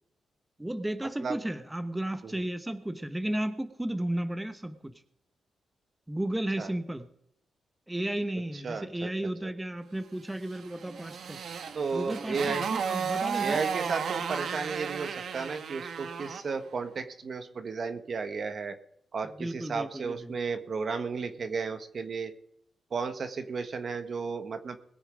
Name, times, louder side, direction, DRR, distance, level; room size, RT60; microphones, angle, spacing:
voice 1, 0.6-4.9 6.1-7.0 7.9-11.4 11.9-13.7 19.4-20.3, right 1 dB, 10° right, 9 dB, 1.0 m, -33 dB
voice 2, 8.6-9.1 9.4-9.5 11.7-12.7 13.4-18.7 19.1-22.3 22.9-24.8, right 5 dB, 55° right, 8 dB, 1.5 m, -33 dB
Motorcycle, 10.5-16.5, right 6 dB, 75° right, 1.2 m, -34 dB
21.5 x 7.2 x 5.0 m, 0.75 s
cardioid pair, 85°, 0 cm